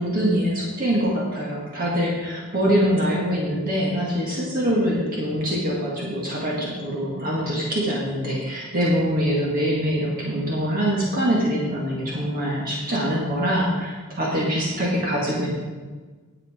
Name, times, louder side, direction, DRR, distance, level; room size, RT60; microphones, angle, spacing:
voice 1, 0.0-15.5, equal, 40° right, -4 dB, 1.9 m, -24 dB
10.5 x 7.8 x 5.1 m, 1.3 s
head